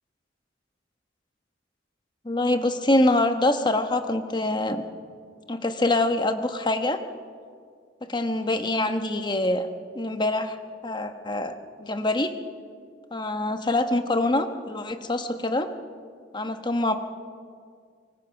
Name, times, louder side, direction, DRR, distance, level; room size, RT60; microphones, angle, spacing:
voice 1, 2.2-4.8 5.5-7.0 8.0-9.7 9.9-10.6 10.8-11.5 11.8-12.3 13.1-15.7 16.3-17.0, left 2 dB, 25° left, 7 dB, 1.2 m, -25 dB
25.0 x 24.5 x 5.9 m, 2.1 s
head